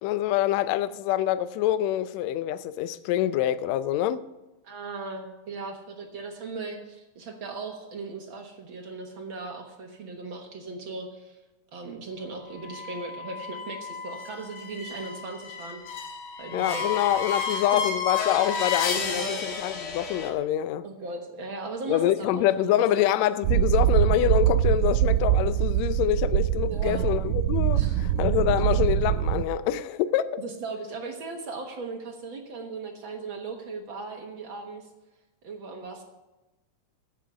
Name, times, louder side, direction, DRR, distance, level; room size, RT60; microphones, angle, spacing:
voice 1, 0.0-4.2 16.5-20.8 21.9-30.4, left 12 dB, 80° left, 1.6 m, -26 dB
voice 2, 4.6-11.4 11.7-15.8 16.4-17.0 17.5-17.9 18.9-19.4 20.8-23.1 26.7-27.1 27.7-28.0 30.4-34.9 35.4-36.0, right 3 dB, 55° right, 1.6 m, -38 dB
sound 1, 12.6-20.3, left 6 dB, 60° left, 2.3 m, -32 dB
sound 2, 23.4-29.5, right 12 dB, 85° right, 1.5 m, -23 dB
15.0 x 6.3 x 6.8 m
omnidirectional pair, 3.6 m